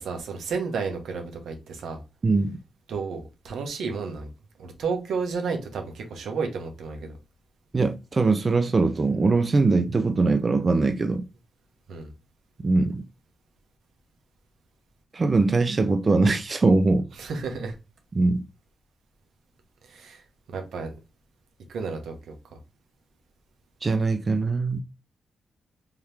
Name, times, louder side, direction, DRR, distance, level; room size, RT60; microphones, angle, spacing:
voice 1, 0.0-2.0 2.9-4.3 4.6-7.1 11.9-12.1 17.2-17.7 19.9-20.2 20.5-20.9 21.7-22.3, right 4 dB, 85° right, 1.0 m, -32 dB
voice 2, 2.2-2.6 7.7-11.3 12.6-13.0 15.1-17.1 18.1-18.4 23.8-24.8, right 3 dB, 35° right, 0.4 m, -22 dB
3.5 x 2.9 x 3.3 m
cardioid pair, 110°, 0 cm